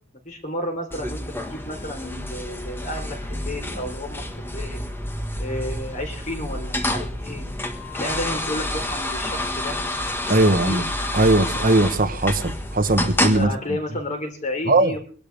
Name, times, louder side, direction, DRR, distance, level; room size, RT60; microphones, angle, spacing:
voice 1, 0.3-4.8 5.4-7.4 7.9-9.8 10.6-10.8 13.3-15.0, left 1 dB, 35° left, 4 dB, 4.0 m, -32 dB
sound 1, 0.9-13.4, left 1 dB, 10° left, 1.6 m, -29 dB
sound 2, 7.5-13.5, left 16 dB, 90° left, 6.8 m, -48 dB
voice 2, 10.3-10.8 11.1-13.8 14.6-14.9, right 2 dB, 45° right, 10 dB, 1.3 m, -19 dB
24.0 x 12.0 x 3.6 m, 0.40 s
head